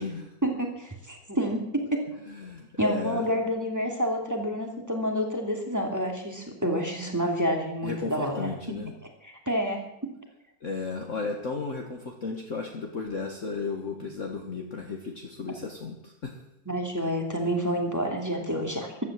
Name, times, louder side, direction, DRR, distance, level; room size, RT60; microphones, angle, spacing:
voice 1, 0.4-2.1 2.8-8.5 9.2-10.1 16.7-19.0, equal, 10° right, 1 dB, 2.7 m, -28 dB
voice 2, 2.3-3.2 7.8-8.9 10.6-16.4, left 4 dB, 45° left, 2 dB, 1.7 m, -34 dB
15.0 x 11.5 x 7.5 m, 0.82 s
omnidirectional pair, 2.0 m